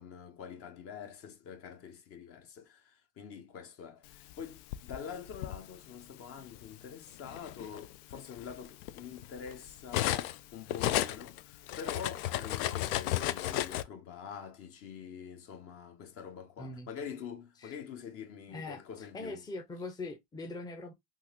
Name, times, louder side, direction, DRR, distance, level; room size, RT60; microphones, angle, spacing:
voice 1, 0.0-19.4, left 7 dB, 45° left, 1.0 m, -46 dB
Cutlery silverware, 4.3-5.6 6.5-6.7 7.1-10.4 10.7-13.8, left 14 dB, 60° left, 0.5 m, -33 dB
voice 2, 16.6-16.9 17.6-17.7 18.5-20.9, left 2 dB, 10° left, 0.7 m, -42 dB
3.7 x 2.5 x 2.8 m
hypercardioid pair, 90°, 33 cm